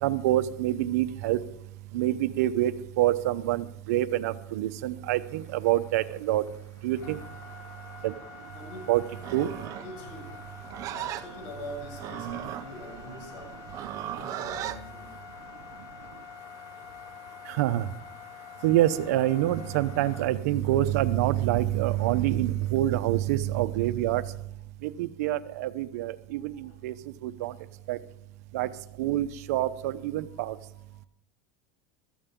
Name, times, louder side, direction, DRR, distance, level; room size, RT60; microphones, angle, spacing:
voice 1, 0.0-1.4 1.9-6.4 6.8-7.2 8.0-8.1 8.9-9.0 9.3-9.5 17.5-17.9 18.6-24.2 24.8-26.9 27.2-27.5 27.9-28.0 28.5-28.7 29.0-30.6, right 14 dB, 75° right, 13 dB, 0.8 m, -26 dB
sound 1, 5.1-22.7, left 4 dB, 40° left, 5.4 m, -47 dB
voice 2, 6.9-7.3 8.5-8.9 9.6-10.4 10.9-13.6 14.0-15.2 16.7-16.9 17.5-17.6 26.3-26.8 30.3-30.4, left 1 dB, 65° left, 2 dB, 7.3 m, -44 dB
Livestock farm animals working animals, 9.1-14.8, right 13 dB, 40° right, 0.8 m, -37 dB
16.0 x 13.5 x 3.7 m, 0.76 s
supercardioid pair, 140°, 8 cm